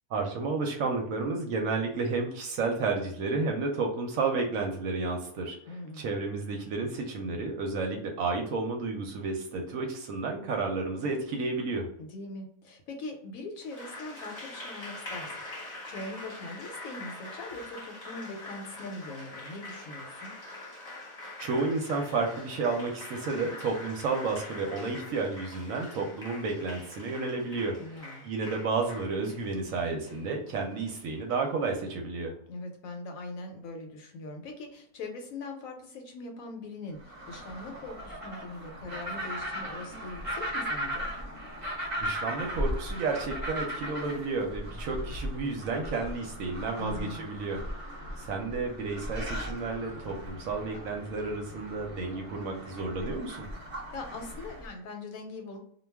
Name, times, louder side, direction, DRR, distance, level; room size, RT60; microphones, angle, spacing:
voice 1, 0.1-11.9 21.4-32.4 42.0-53.5, right 3 dB, 70° right, 2 dB, 0.9 m, -31 dB
voice 2, 5.7-6.1 12.0-15.3 15.6-20.3 27.8-28.3 32.5-41.1 46.8-47.3 53.7-55.6, left 2 dB, 75° left, 3 dB, 1.0 m, -41 dB
Applause, 13.6-31.4, left 2 dB, 25° left, 0.8 m, -44 dB
sound 1, 37.0-54.7, equal, 35° right, 0.5 m, -37 dB
2.3 x 2.2 x 3.3 m, 0.65 s
omnidirectional pair, 1.6 m